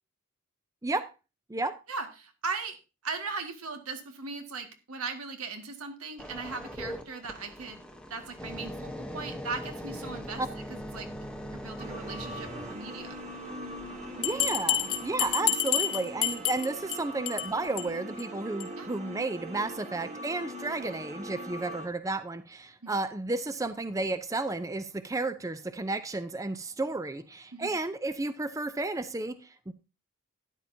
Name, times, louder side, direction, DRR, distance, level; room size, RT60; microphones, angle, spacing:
voice 1, 1.9-2.8 3.0-7.8 8.1-10.4 10.7-11.1 11.5-13.2 15.5-15.6 18.8-18.9 22.8-22.9 27.5-27.8, right 4 dB, 90° right, 1.9 m, -38 dB
sound 1, 6.2-17.1 17.7-17.9, equal, 5° left, 0.9 m, -42 dB
sound 2, 11.8-21.9, equal, 30° right, 1.8 m, -41 dB
Bell, 14.2-17.0 17.3-17.5 17.8-17.9 18.2-18.3 18.6-18.7, left 10 dB, 80° left, 1.4 m, -28 dB
voice 2, 14.2-29.7, right 2 dB, 15° right, 0.5 m, -32 dB
13.0 x 9.8 x 2.7 m
head